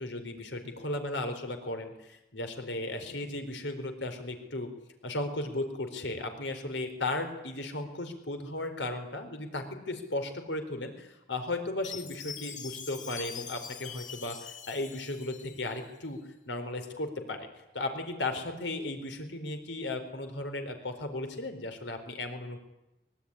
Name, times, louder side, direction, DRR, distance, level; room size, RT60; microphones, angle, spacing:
voice 1, 0.0-4.7 5.0-16.2 16.5-17.5 17.7-22.6, left 2 dB, 85° left, 6 dB, 4.3 m, -35 dB
Chime, 11.8-16.0, left 7 dB, 45° left, 2.0 m, -44 dB
24.0 x 22.5 x 9.9 m, 0.93 s
head